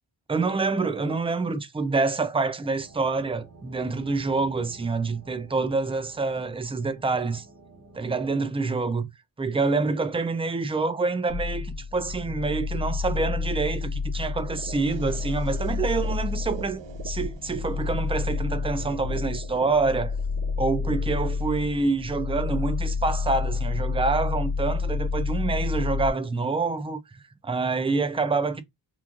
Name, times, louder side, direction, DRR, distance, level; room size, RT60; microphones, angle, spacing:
voice 1, 0.3-7.5 7.9-9.1 9.4-20.2 20.6-28.6, right 3 dB, 15° right, 0.3 m, -27 dB
sound 1, 2.6-8.3, right 3 dB, 35° right, 0.7 m, -50 dB
sound 2, 11.3-26.1, left 4 dB, 80° left, 0.9 m, -29 dB
sound 3, 14.3-22.3, right 8 dB, 70° right, 0.6 m, -45 dB
3.1 x 2.3 x 2.4 m
wide cardioid pair, 95°, 46 cm